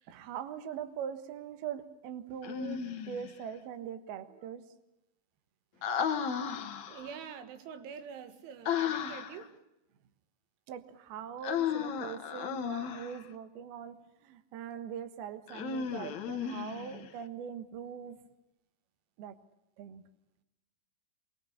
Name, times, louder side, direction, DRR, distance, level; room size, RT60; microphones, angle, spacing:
voice 1, 0.1-4.6 10.7-18.2 19.2-19.4 19.8-20.0, right 8 dB, 65° right, 2.9 m, -42 dB
Human voice, 2.4-3.3 5.8-7.2 8.6-9.4 11.4-13.2 15.5-17.1, left 8 dB, 85° left, 1.6 m, -34 dB
voice 2, 6.9-9.5 12.9-13.0, right 7 dB, 85° right, 4.1 m, -46 dB
23.0 x 22.5 x 8.2 m
omnidirectional pair, 5.4 m